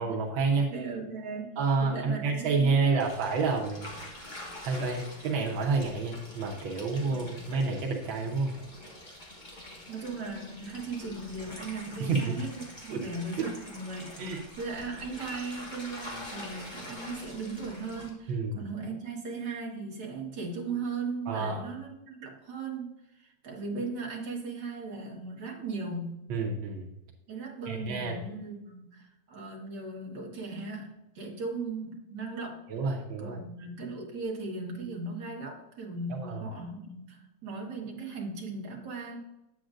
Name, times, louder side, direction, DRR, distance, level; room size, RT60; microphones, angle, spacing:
voice 1, 0.0-0.7 1.6-3.9 4.6-8.5 12.0-12.4 12.9-13.0 14.2-14.4 18.3-18.6 21.3-21.6 26.3-26.9 27.7-28.2 32.7-33.4 36.1-36.5, right 4 dB, 85° right, -1 dB, 1.7 m, -29 dB
voice 2, 0.5-3.1 9.9-26.2 27.3-39.2, right 3 dB, 60° right, -1 dB, 2.1 m, -38 dB
sound 1, 3.0-18.1, left 1 dB, 25° left, 1.6 m, -45 dB
8.7 x 7.7 x 2.5 m, 0.90 s
omnidirectional pair, 2.1 m